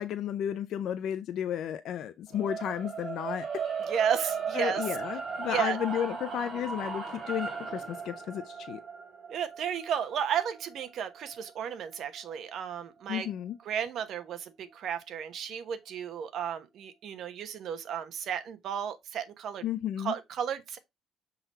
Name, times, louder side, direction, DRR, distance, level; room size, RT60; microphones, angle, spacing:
voice 1, 0.0-3.6 4.5-8.8 13.1-13.6 19.6-20.1, left 10 dB, 55° left, 0.5 m, -33 dB
sound 1, 2.3-12.5, right 6 dB, 35° right, 3.2 m, -37 dB
voice 2, 3.9-4.8 5.5-5.8 9.3-13.3 13.6-19.7 20.0-20.8, right 8 dB, 50° right, 1.1 m, -33 dB
6.9 x 3.9 x 4.2 m
cardioid pair, 160°, 0 cm